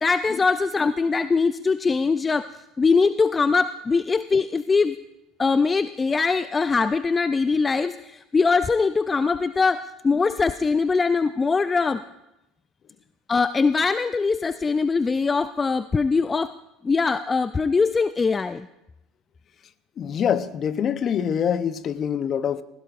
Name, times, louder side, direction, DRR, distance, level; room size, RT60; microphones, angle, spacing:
voice 1, 0.0-2.5 2.8-5.0 5.4-12.0 13.3-16.5 16.8-18.7, left 4 dB, 25° left, 0.4 m, -22 dB
voice 2, 20.0-22.6, left 8 dB, 45° left, 0.7 m, -25 dB
19.0 x 16.0 x 2.5 m
hypercardioid pair, 75°, 0 cm